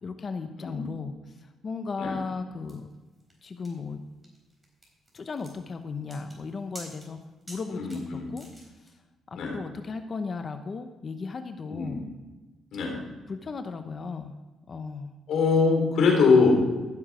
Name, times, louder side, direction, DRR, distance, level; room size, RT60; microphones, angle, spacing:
voice 1, 0.0-2.9 3.4-4.0 5.1-7.2 7.5-8.5 9.3-12.1 13.3-14.3 14.7-15.2, left 4 dB, 40° left, 8 dB, 0.8 m, -36 dB
sound 1, 2.7-8.9, right 1 dB, 15° right, 4.1 m, -49 dB
voice 2, 7.7-8.3 9.4-9.5 11.7-12.0 12.7-13.0 15.3-16.5, left 4 dB, 75° left, 0 dB, 4.0 m, -22 dB
15.0 x 7.1 x 4.9 m, 1.2 s
cardioid pair, 90°, 0 cm